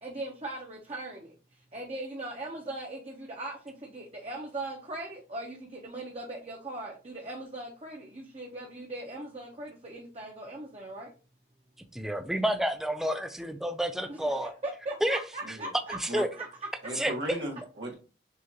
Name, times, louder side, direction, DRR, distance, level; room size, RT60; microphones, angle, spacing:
voice 1, 0.0-11.1 14.1-16.5, right 2 dB, 35° right, -1 dB, 0.7 m, -40 dB
voice 2, 11.9-14.5 15.0-15.2 15.5-15.6 16.0-16.3 16.9-17.1, right 1 dB, ahead, 6 dB, 0.3 m, -29 dB
voice 3, 16.8-17.9, right 1 dB, 80° right, 0 dB, 1.4 m, -36 dB
6.3 x 2.5 x 2.8 m, 0.35 s
head